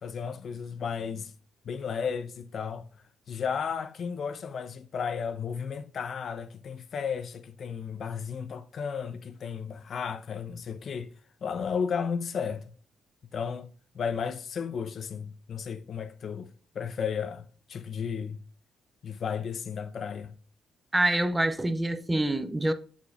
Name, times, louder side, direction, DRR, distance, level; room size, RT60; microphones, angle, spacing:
voice 1, 0.0-1.3 1.6-2.9 3.3-11.1 11.4-12.6 13.3-13.7 13.9-16.5 16.7-18.4 19.0-20.3, left 6 dB, 55° left, 0.7 m, -33 dB
voice 2, 20.9-22.7, right 1 dB, 15° right, 0.6 m, -26 dB
7.1 x 6.1 x 2.4 m
cardioid pair, 90°, 0 cm